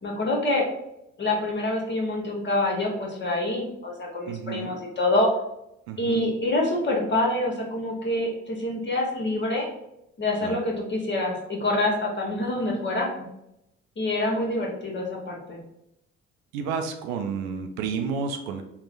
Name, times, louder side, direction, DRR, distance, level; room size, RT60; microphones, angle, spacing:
voice 1, 0.0-0.6 1.2-5.3 6.0-9.7 10.2-13.3 14.0-15.6, left 1 dB, 30° left, -1 dB, 1.0 m, -26 dB
voice 2, 4.3-4.7 5.9-6.3 10.4-10.6 16.5-18.6, right 6 dB, 75° right, 5 dB, 0.5 m, -31 dB
3.7 x 2.1 x 2.5 m, 0.84 s
hypercardioid pair, 45°, 34 cm